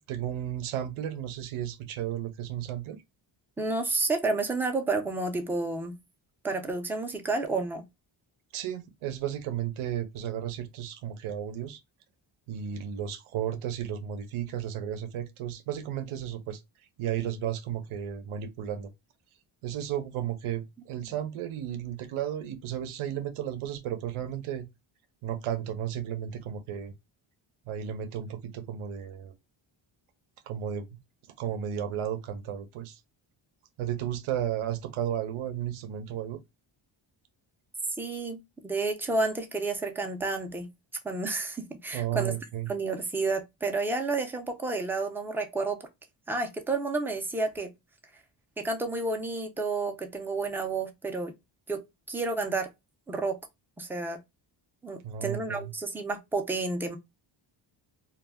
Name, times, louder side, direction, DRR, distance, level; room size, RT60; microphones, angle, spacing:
voice 1, 0.1-3.0 8.5-11.8 12.5-16.6 17.0-18.9 19.6-24.7 25.2-26.9 27.7-29.3 30.5-31.0 31.4-33.0 33.8-36.4 41.9-42.7 55.0-55.7, right 10 dB, 85° right, 0.7 m, -33 dB
voice 2, 3.6-5.9 6.4-7.8 38.0-40.7 41.0-42.3 42.7-45.8 46.3-47.7 48.6-51.3 51.7-52.7 53.1-53.4 53.8-54.2 54.8-57.0, right 3 dB, 5° right, 0.4 m, -30 dB
2.3 x 2.1 x 3.3 m
cardioid pair, 95°, 49 cm